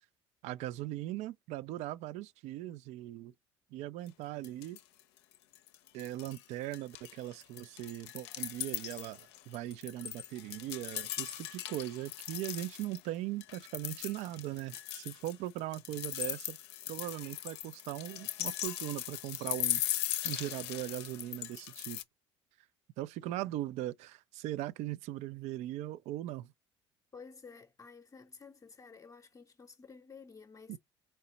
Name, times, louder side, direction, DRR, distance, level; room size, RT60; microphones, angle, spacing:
voice 1, 0.4-3.3 3.7-4.8 5.9-16.6 16.9-19.8 20.2-22.0 23.0-26.5 30.7-30.8, right 15 dB, 50° right, 0.4 m, -39 dB
sound 1, 4.1-4.2 4.4-5.0 5.3-6.4 6.7-13.0 13.4-22.0, left 13 dB, 65° left, 0.5 m, -39 dB
voice 2, 27.1-30.8, left 5 dB, 20° left, 0.7 m, -52 dB
4.4 x 2.8 x 2.7 m
figure-of-eight pair, 60°, 15 cm